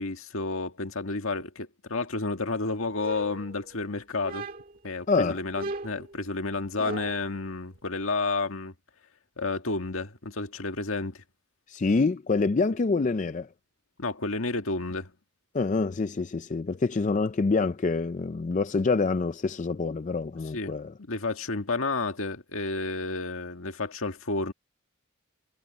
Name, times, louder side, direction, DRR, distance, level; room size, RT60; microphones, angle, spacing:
voice 1, 0.0-4.5 4.8-8.7 9.4-11.2 14.0-15.1 20.5-20.8 21.1-24.5, left 3 dB, 70° left, 1.9 m, -31 dB
sound 1, 3.0-3.8 4.2-4.9 5.6-7.3, right 2 dB, 40° right, 1.7 m, -38 dB
voice 2, 5.1-5.4 11.7-13.5 15.5-20.9, left 4 dB, 35° left, 0.4 m, -26 dB
head